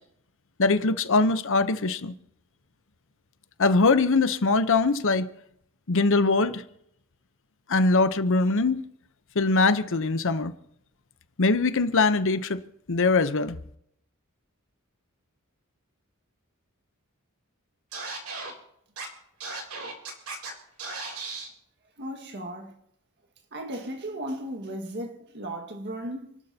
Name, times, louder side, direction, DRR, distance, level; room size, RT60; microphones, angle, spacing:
voice 1, 0.6-2.1 3.6-5.3 5.9-6.6 7.7-8.8 9.3-10.5 11.4-12.6 12.9-13.6, left 3 dB, 60° left, 0.8 m, -22 dB
Scratching (performance technique), 17.9-18.5 19.0-19.1 19.4-20.5 20.8-21.5, right 3 dB, 75° right, 3.4 m, -36 dB
voice 2, 22.0-22.8 23.5-26.4, right 1 dB, 55° right, 1.7 m, -36 dB
29.0 x 12.0 x 2.8 m
head